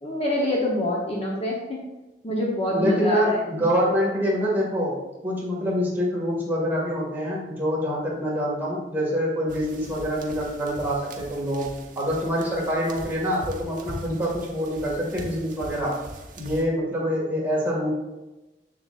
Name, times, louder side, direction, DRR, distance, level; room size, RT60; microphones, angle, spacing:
voice 1, 0.0-1.8 2.2-3.4, left 1 dB, 35° left, -3 dB, 1.0 m, -25 dB
voice 2, 2.7-5.0 5.2-16.0 16.4-17.9, equal, 10° right, -6 dB, 2.1 m, -26 dB
sound 1, 9.5-16.6, right 1 dB, 50° right, 0.8 m, -41 dB
6.9 x 6.7 x 2.6 m, 1.1 s
head